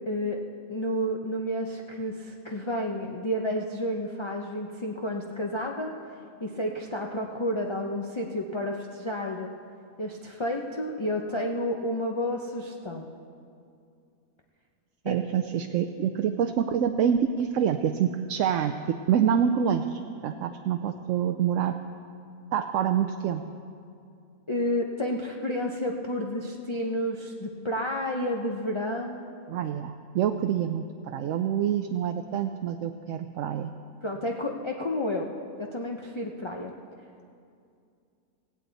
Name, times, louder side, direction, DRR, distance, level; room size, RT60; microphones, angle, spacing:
voice 1, 0.1-0.4 0.7-5.9 6.4-9.5 10.0-13.1 15.0-15.2 24.5-29.2 34.0-35.3 35.6-36.7, left 1 dB, 25° left, 1 dB, 0.6 m, -30 dB
voice 2, 15.0-21.8 22.5-23.5 29.5-33.7, right 8 dB, 70° right, 7 dB, 0.9 m, -26 dB
17.0 x 17.0 x 4.0 m, 2.4 s
omnidirectional pair, 1.5 m